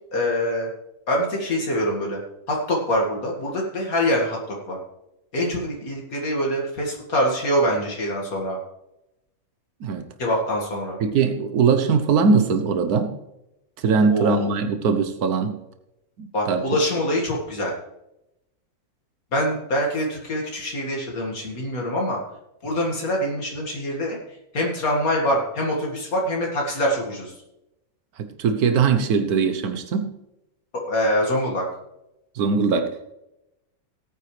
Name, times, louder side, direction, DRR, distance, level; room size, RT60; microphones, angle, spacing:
voice 1, 0.1-0.7 1.1-2.2 2.5-4.4 4.7-4.8 5.3-8.6 10.2-11.0 14.1-14.5 16.3-17.7 19.3-22.2 22.6-24.2 24.5-27.3 30.9-31.6, equal, 70° left, -2 dB, 2.5 m, -24 dB
voice 2, 11.0-13.1 13.8-15.5 16.2-16.6 28.2-30.1 32.3-33.1, right 5 dB, 85° right, 8 dB, 1.4 m, -21 dB
17.5 x 9.3 x 3.3 m, 0.88 s
omnidirectional pair, 1.6 m